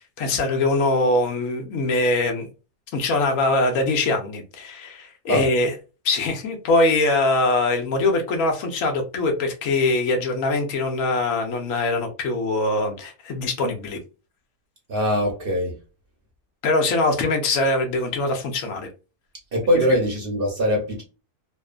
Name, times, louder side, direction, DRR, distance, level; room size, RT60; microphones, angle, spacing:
voice 1, 0.2-2.5 2.9-5.7 6.0-14.0 16.6-18.9, left 2 dB, 65° left, 1.0 m, -22 dB
voice 2, 14.9-15.8 19.5-21.0, equal, 50° right, 0.7 m, -22 dB
2.9 x 2.0 x 2.3 m
omnidirectional pair, 1.7 m